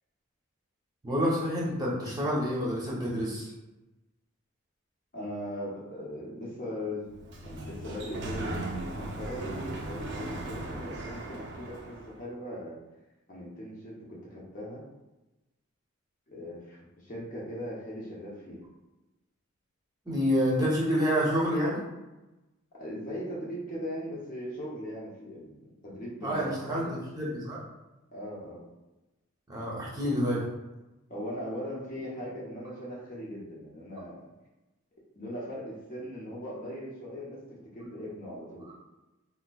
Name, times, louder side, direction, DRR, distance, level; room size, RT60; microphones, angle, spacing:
voice 1, 1.0-3.5 20.1-21.8 26.2-26.8 27.2-27.6 29.5-30.4, equal, 20° right, -6 dB, 0.8 m, -28 dB
voice 2, 5.1-7.1 7.4-12.8 13.3-14.8 16.3-18.6 22.8-25.5 25.8-27.0 28.1-28.6 31.1-34.2 35.2-38.8, equal, 40° left, -5 dB, 0.8 m, -39 dB
Sliding door, 7.0-12.2, right 1 dB, 60° right, 0.5 m, -38 dB
3.5 x 2.9 x 2.3 m, 1.0 s
head